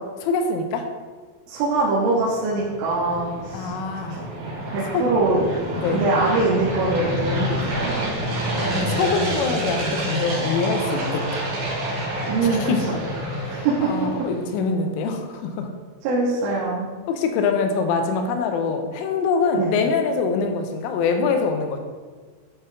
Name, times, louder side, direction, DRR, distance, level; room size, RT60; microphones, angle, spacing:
voice 1, 0.2-0.9 3.5-4.2 4.9-5.0 5.8-6.1 8.6-11.5 12.6-12.8 13.4-15.7 17.1-21.8, left 4 dB, 85° left, 5 dB, 3.1 m, -24 dB
voice 2, 1.5-3.7 4.1-4.2 4.7-5.5 5.9-8.1 12.3-12.9 13.5-13.9 16.0-16.9 19.5-19.7, right 3 dB, 80° right, -7 dB, 3.5 m, -23 dB
sound 1, 2.1-14.4, equal, 60° right, 2.9 m, -28 dB
11.5 x 4.1 x 2.6 m, 1.5 s
omnidirectional pair, 5.6 m